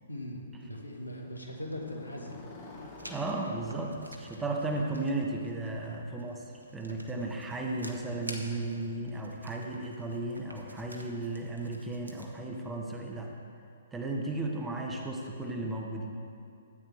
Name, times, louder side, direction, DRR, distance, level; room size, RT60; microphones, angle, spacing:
voice 1, 0.1-2.4 5.6-5.9, left 1 dB, 85° left, 0 dB, 1.5 m, -40 dB
Motorcycle, 0.9-9.0, left 2 dB, 30° left, 1.8 m, -51 dB
Writing, 3.0-12.3, right 1 dB, 80° right, 1.0 m, -50 dB
voice 2, 3.1-6.4 6.7-13.3 13.9-16.1, right 2 dB, 10° right, 1 dB, 0.9 m, -35 dB
13.0 x 8.5 x 3.4 m, 2.6 s
figure-of-eight pair, 120°, 0 cm